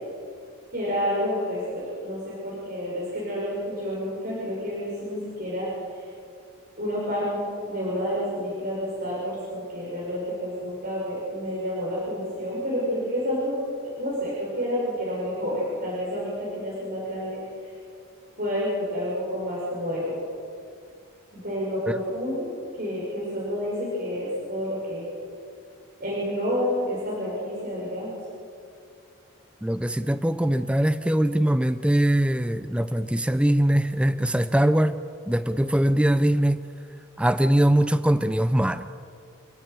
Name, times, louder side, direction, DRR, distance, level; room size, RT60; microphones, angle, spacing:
voice 1, 0.7-6.1 6.8-17.8 18.4-20.2 21.3-22.5 22.8-25.1 26.0-28.1, equal, 45° right, -7 dB, 6.4 m, -29 dB
voice 2, 29.6-35.0 35.3-36.6 37.2-38.8, right 1 dB, 5° right, 11 dB, 0.5 m, -22 dB
29.0 x 11.0 x 9.4 m, 2.4 s
head